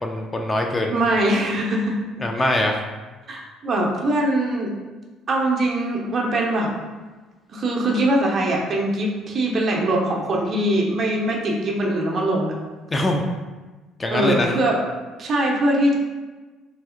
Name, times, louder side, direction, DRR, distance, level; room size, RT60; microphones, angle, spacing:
voice 1, 0.0-0.9 2.2-2.8 12.9-13.2 14.0-14.5, left 1 dB, 20° left, 2 dB, 0.3 m, -22 dB
voice 2, 0.9-2.0 2.4-2.5 3.3-4.8 5.3-6.7 7.5-12.5 14.1-14.8 15.2-15.9, right 1 dB, 40° right, -1 dB, 0.6 m, -22 dB
3.2 x 2.7 x 2.4 m, 1.2 s
figure-of-eight pair, 50°, 0 cm